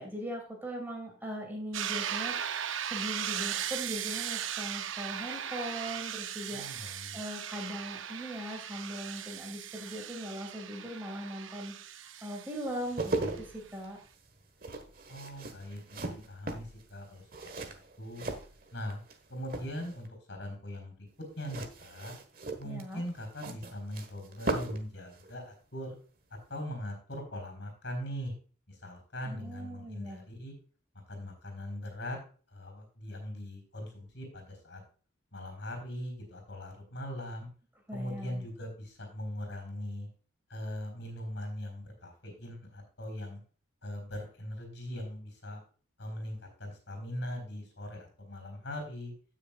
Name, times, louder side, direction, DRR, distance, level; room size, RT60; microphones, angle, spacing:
voice 1, 0.0-14.0 22.6-23.0 29.3-30.2 37.9-38.5, equal, 10° right, 1 dB, 2.6 m, -40 dB
sound 1, 1.7-13.4, right 9 dB, 90° right, 0.7 m, -38 dB
voice 2, 6.5-7.2 15.1-17.2 17.6-18.3 18.7-19.0 19.3-21.1 21.4-22.1 22.6-25.9 26.5-28.3 28.7-30.5 31.1-32.2 32.5-34.8 35.3-37.5 37.9-40.1 40.5-43.4 43.8-45.6 46.0-49.1, left 1 dB, 65° left, 4 dB, 4.3 m, -40 dB
sound 2, 12.7-19.2 19.4-20.1 21.4-24.9 25.1-25.3, right 2 dB, 45° right, 1.4 m, -38 dB
16.0 x 6.6 x 2.4 m, 0.39 s
head